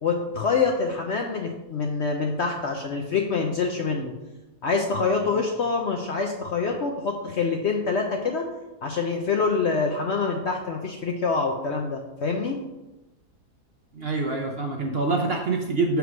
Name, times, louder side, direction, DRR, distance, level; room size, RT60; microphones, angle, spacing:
voice 1, 0.0-4.1 4.6-8.5 8.8-12.6, left 4 dB, 60° left, 2 dB, 0.7 m, -26 dB
voice 2, 13.9-16.0, right 3 dB, 55° right, 2 dB, 0.7 m, -26 dB
5.0 x 4.7 x 6.1 m, 1.0 s
omnidirectional pair, 1.7 m